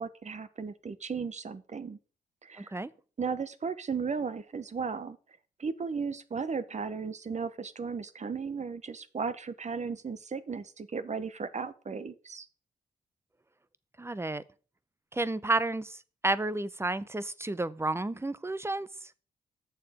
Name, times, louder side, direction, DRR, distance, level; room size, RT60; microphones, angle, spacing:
voice 1, 0.0-2.0 2.4-2.7 3.2-5.2 5.6-12.5, right 5 dB, 40° right, 0.9 m, -35 dB
voice 2, 2.6-2.9 14.0-14.4 15.1-18.9, right 2 dB, 15° right, 0.6 m, -31 dB
6.8 x 6.6 x 4.9 m
supercardioid pair, 50°, 18 cm